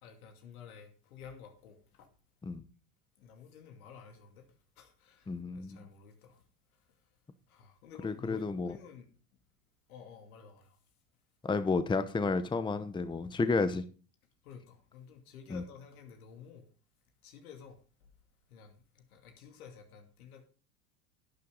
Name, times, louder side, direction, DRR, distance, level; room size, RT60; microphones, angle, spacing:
voice 1, 0.0-2.1 3.2-4.4 4.8-6.4 7.5-9.1 9.9-10.8 14.4-16.7 17.2-17.8 18.5-20.4, left 7 dB, 75° left, 2.6 m, -52 dB
voice 2, 5.3-5.9 8.0-8.8 11.4-13.8 15.5-15.6, left 4 dB, 10° left, 0.8 m, -31 dB
11.0 x 9.5 x 3.9 m
hypercardioid pair, 80°, 43 cm